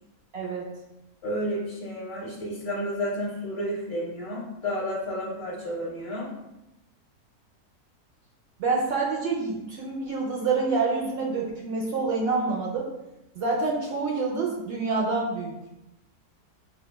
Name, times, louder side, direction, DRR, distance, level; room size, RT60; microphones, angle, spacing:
voice 1, 0.3-0.7 8.6-12.9 13.4-15.5, right 4 dB, 85° right, -2 dB, 0.5 m, -27 dB
voice 2, 1.2-6.3, equal, 50° left, -5 dB, 1.0 m, -31 dB
5.7 x 2.2 x 2.2 m, 0.93 s
omnidirectional pair, 1.7 m